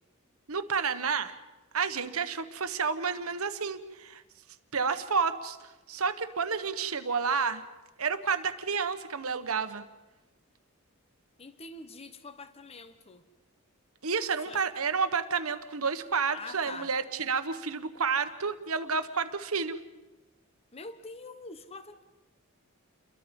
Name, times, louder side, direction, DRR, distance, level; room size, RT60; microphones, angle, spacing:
voice 1, 0.5-1.3 1.7-4.2 4.7-7.6 8.0-9.8 14.0-19.8, right 5 dB, 75° right, 10 dB, 1.3 m, -30 dB
voice 2, 11.4-13.2 14.5-14.6 16.3-16.9 20.7-22.0, left 3 dB, 30° left, 10 dB, 1.0 m, -45 dB
29.5 x 22.5 x 5.4 m, 1.1 s
head